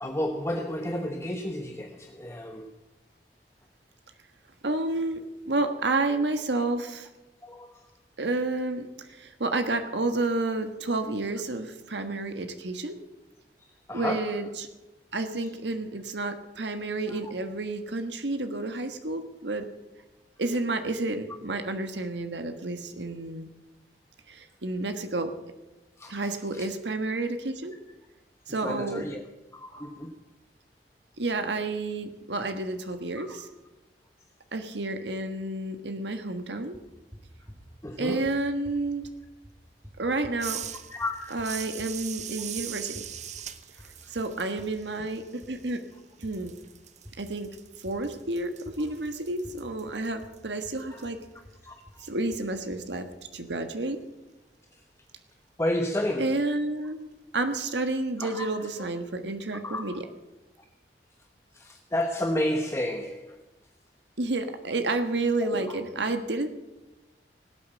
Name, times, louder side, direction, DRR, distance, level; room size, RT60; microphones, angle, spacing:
voice 1, 0.0-2.7 7.4-7.9 13.6-14.4 17.1-17.3 26.0-26.7 28.6-29.2 29.5-30.2 33.2-33.4 37.8-38.3 40.9-41.6 43.7-44.2 50.9-51.1 51.6-52.1 54.7-54.8 55.6-56.5 58.2-58.7 59.5-60.0 61.5-63.4 65.4-65.8, left 1 dB, 15° left, 3 dB, 1.1 m, -32 dB
voice 2, 4.6-5.2 5.5-7.1 8.2-13.0 13.9-14.7 15.1-19.6 20.4-23.5 24.3-25.3 26.1-27.7 28.5-29.1 31.2-33.5 34.5-36.7 38.0-39.1 40.0-40.6 41.3-43.0 44.1-45.8 46.2-46.5 47.2-47.5 47.8-51.2 52.0-53.1 53.3-54.0 56.2-57.1 57.3-60.0 64.2-66.5, right 2 dB, 80° right, 8 dB, 1.5 m, -30 dB
sound 1, 36.7-53.7, equal, 15° right, 3.1 m, -51 dB
sound 2, 40.4-45.9 46.2-51.1, right 10 dB, 40° right, 0.9 m, -41 dB
18.5 x 8.3 x 7.7 m, 1.0 s
head